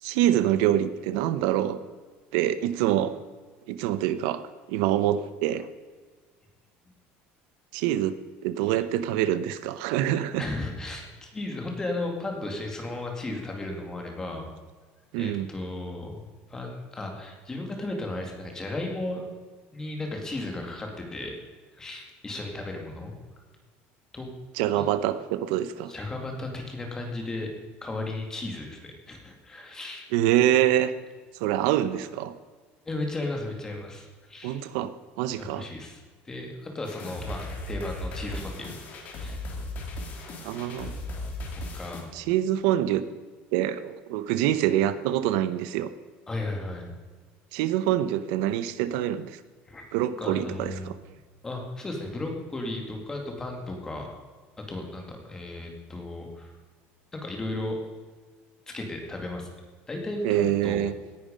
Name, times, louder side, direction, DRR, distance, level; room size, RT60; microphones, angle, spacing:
voice 1, 0.0-1.8 2.3-3.1 3.7-4.4 4.7-5.7 7.7-8.1 8.4-10.4 15.1-15.5 24.6-25.9 30.1-30.9 31.4-32.3 34.4-35.6 40.4-40.9 42.1-43.0 43.5-45.9 47.5-49.4 49.9-50.9 60.2-60.9, right 12 dB, 80° right, 13 dB, 0.9 m, -25 dB
voice 2, 10.4-14.5 15.2-19.3 19.7-21.3 21.7-23.1 24.1-24.3 24.8-24.9 25.9-27.5 27.8-30.1 32.8-34.6 35.4-38.7 39.1-39.5 41.7-42.1 46.3-46.9 49.7-49.9 50.2-50.9 51.4-54.1 54.6-56.5 57.1-57.8 58.7-59.5 59.9-60.8, left 2 dB, 10° left, 2 dB, 2.3 m, -35 dB
sound 1, 36.8-42.0, left 1 dB, 35° left, 2.7 m, -36 dB
17.5 x 11.0 x 5.3 m, 1.5 s
cardioid pair, 175°, 5 cm